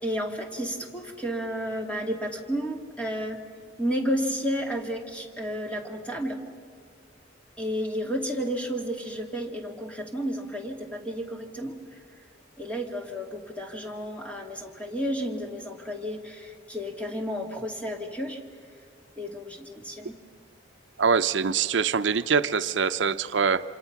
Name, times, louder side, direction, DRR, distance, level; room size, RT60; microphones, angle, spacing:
voice 1, 0.0-3.4 3.8-6.4 7.6-12.0 12.6-18.4 19.2-20.1, equal, 5° left, 1 dB, 2.4 m, -32 dB
voice 2, 21.0-23.6, right 5 dB, 75° right, 11 dB, 0.6 m, -24 dB
28.0 x 26.5 x 5.9 m, 2.2 s
head